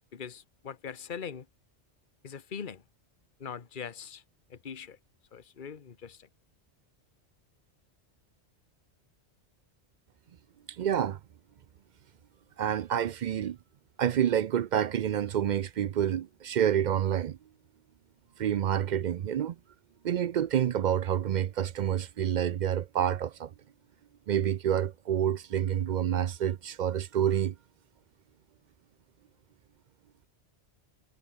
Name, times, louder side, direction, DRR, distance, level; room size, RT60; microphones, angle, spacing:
voice 1, 0.1-1.5 2.2-2.8 3.4-4.2 4.5-5.0 5.3-6.3, left 7 dB, 45° left, 1.3 m, -41 dB
voice 2, 10.8-11.2 12.6-13.6 14.0-17.4 18.4-19.6 20.0-23.5 24.3-27.5, right 9 dB, 60° right, 0.5 m, -28 dB
omnidirectional pair, 1.2 m